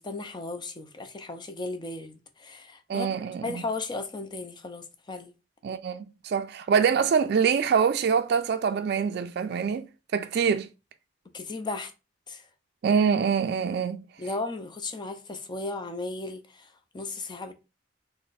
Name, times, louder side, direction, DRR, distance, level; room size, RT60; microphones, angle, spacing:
voice 1, 0.0-3.1 3.4-5.3 11.3-11.9 12.3-12.4 14.2-16.7 16.9-17.5, left 3 dB, 25° left, 0.5 m, -35 dB
voice 2, 2.9-3.6 5.6-10.7 12.8-14.0, right 6 dB, 60° right, 0.3 m, -25 dB
3.3 x 2.1 x 3.9 m
head